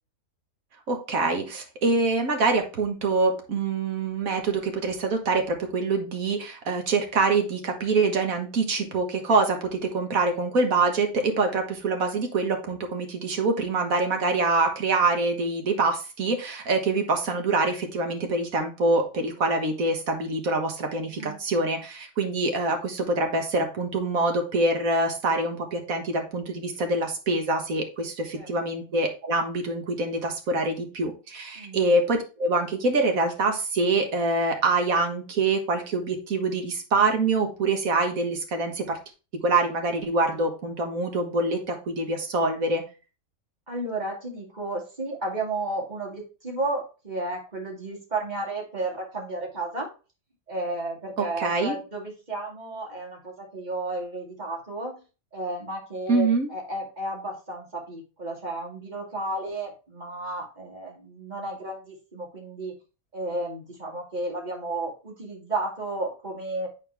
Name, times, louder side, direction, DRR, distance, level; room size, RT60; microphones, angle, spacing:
voice 1, 0.9-39.0 39.4-42.8 51.2-51.8 56.1-56.5, right 3 dB, 75° right, 4 dB, 1.8 m, -25 dB
voice 2, 43.7-49.9 50.5-55.0 55.3-62.7 63.1-66.7, right 2 dB, 30° right, -2 dB, 2.4 m, -33 dB
9.1 x 4.2 x 3.4 m, 0.32 s
omnidirectional pair, 1.5 m